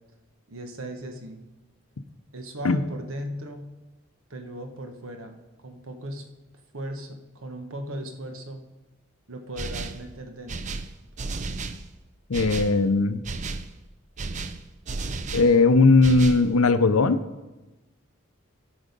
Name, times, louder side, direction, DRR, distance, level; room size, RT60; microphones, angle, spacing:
voice 1, 0.5-1.4 2.3-3.6 4.3-6.2 6.7-8.6 9.3-10.8, right 1 dB, 80° right, 5 dB, 1.3 m, -37 dB
sound 1, 9.6-10.1 10.5-11.9 12.3-12.8 13.2-13.7 14.2-15.5 16.0-16.5, right 3 dB, 35° right, 0.5 m, -33 dB
voice 2, 12.3-13.2 15.3-17.2, left 3 dB, 90° left, 11 dB, 0.6 m, -18 dB
13.5 x 6.3 x 5.3 m, 1.1 s
head